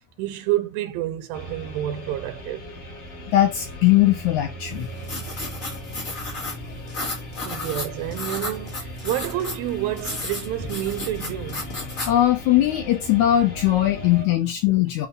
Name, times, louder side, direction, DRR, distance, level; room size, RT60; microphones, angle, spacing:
voice 1, 0.2-2.7 7.4-11.8, right 13 dB, 90° right, 2.5 m, -29 dB
sound 1, 1.3-14.2, equal, 45° left, 2.3 m, -39 dB
voice 2, 3.3-4.9 12.1-15.1, left 13 dB, 75° left, 1.8 m, -20 dB
sound 2, 4.7-12.2, left 2 dB, 30° left, 1.5 m, -33 dB
8.0 x 2.8 x 5.3 m
omnidirectional pair, 4.0 m